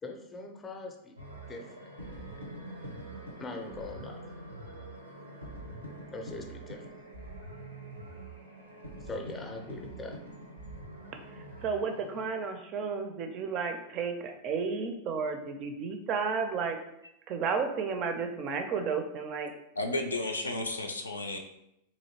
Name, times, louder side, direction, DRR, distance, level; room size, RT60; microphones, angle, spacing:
voice 1, 0.0-1.2 1.5-1.9 3.4-4.3 6.1-6.9 9.0-10.2, left 2 dB, 20° left, 4 dB, 0.5 m, -41 dB
sound 1, 1.2-12.3, right 1 dB, 85° right, 0.6 m, -45 dB
voice 2, 11.3-16.8 17.3-19.5, right 5 dB, 35° right, 6 dB, 0.4 m, -32 dB
voice 3, 19.7-21.4, left 2 dB, 75° left, 4 dB, 0.4 m, -32 dB
3.0 x 2.7 x 2.9 m, 0.81 s
figure-of-eight pair, 90°, 0 cm